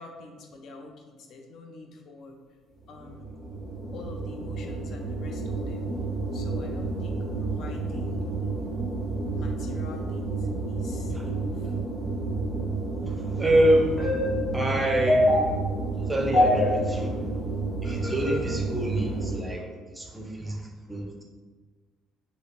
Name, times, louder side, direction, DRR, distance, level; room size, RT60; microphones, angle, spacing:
voice 1, 0.0-2.4 2.9-3.3 3.9-5.9 6.3-8.2 9.3-11.7, left 3 dB, 60° left, 3 dB, 0.5 m, -46 dB
sound 1, 2.8-19.4, right 1 dB, 35° left, 1.0 m, -28 dB
voice 2, 13.1-14.2 14.5-15.5 16.1-17.3 17.8-19.7 19.9-21.2, right 1 dB, 10° right, 1 dB, 0.5 m, -26 dB
3.1 x 2.8 x 3.0 m, 1.4 s
cardioid pair, 130°, 0 cm